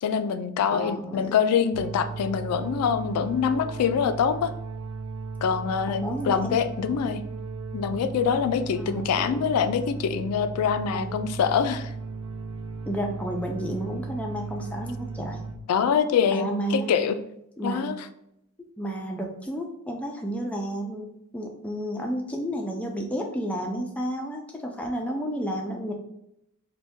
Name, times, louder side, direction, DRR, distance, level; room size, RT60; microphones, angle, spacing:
voice 1, 0.0-4.5 5.4-7.2 7.7-11.9 15.7-17.1 17.6-18.0, left 7 dB, 85° left, 14 dB, 0.3 m, -25 dB
voice 2, 0.7-1.3 5.9-6.6 8.8-9.4 10.9-11.2 12.9-15.4 16.3-16.9 17.6-18.0 18.8-25.9, equal, 5° left, 1 dB, 0.3 m, -31 dB
sound 1, 1.7-15.5, right 4 dB, 85° right, 0.4 m, -36 dB
2.6 x 2.2 x 3.4 m, 0.81 s
head